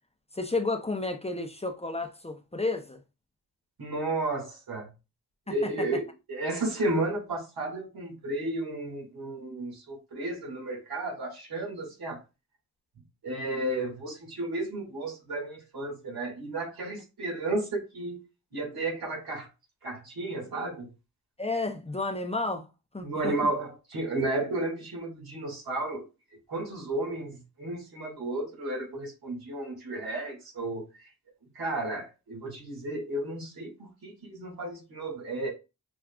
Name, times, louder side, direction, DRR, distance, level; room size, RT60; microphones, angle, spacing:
voice 1, 0.3-3.0 21.4-22.7 22.9-23.3, left 3 dB, 15° left, 0.6 m, -31 dB
voice 2, 3.8-4.9 5.5-12.2 13.2-18.2 18.5-19.5 19.8-20.9 23.0-26.1 26.5-30.8 31.6-35.5, right 2 dB, 85° right, 2.1 m, -33 dB
6.0 x 2.3 x 2.3 m
cardioid pair, 70°, 36 cm